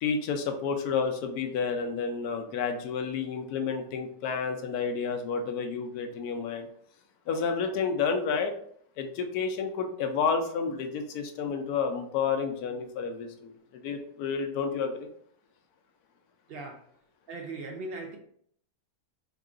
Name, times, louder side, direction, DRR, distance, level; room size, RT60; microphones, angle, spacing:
voice 1, 0.0-6.7 7.3-8.5 9.0-15.1, left 5 dB, 90° left, 5 dB, 1.1 m, -30 dB
voice 2, 16.5-17.0 17.3-18.2, right 2 dB, 85° right, 1 dB, 0.5 m, -39 dB
3.6 x 2.3 x 3.6 m, 0.65 s
omnidirectional pair, 1.6 m